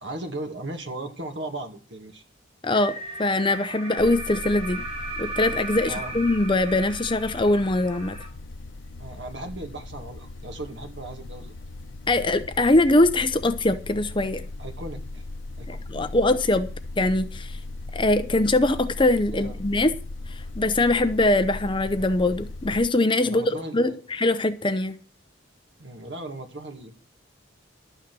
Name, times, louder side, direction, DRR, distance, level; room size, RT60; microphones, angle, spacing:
voice 1, 0.0-2.2 5.8-6.1 9.0-11.5 14.6-15.2 15.6-16.1 19.3-19.6 23.2-24.0 25.8-26.9, right 2 dB, 70° right, 5 dB, 2.3 m, -37 dB
voice 2, 2.6-4.8 5.2-8.2 12.1-14.4 15.7-16.7 17.0-17.6 17.9-19.9 20.3-24.9, left 2 dB, 25° left, 9 dB, 0.7 m, -22 dB
sound 1, 2.7-8.3, right 2 dB, 30° right, 3.8 m, -36 dB
sound 2, 4.0-22.9, left 2 dB, 85° left, 0.7 m, -38 dB
12.0 x 9.0 x 6.0 m, 0.37 s
head